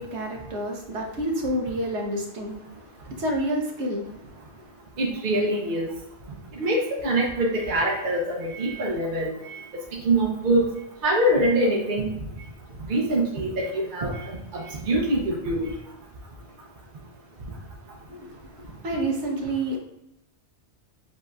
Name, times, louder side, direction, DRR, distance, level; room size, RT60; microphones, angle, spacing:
voice 1, 0.0-4.7 18.1-19.8, right 1 dB, 85° right, 1 dB, 1.2 m, -30 dB
voice 2, 5.0-5.9 6.5-10.7 11.0-12.1 12.9-15.7, right 1 dB, 50° right, -3 dB, 0.9 m, -24 dB
7.5 x 2.8 x 2.3 m, 0.85 s
omnidirectional pair, 1.1 m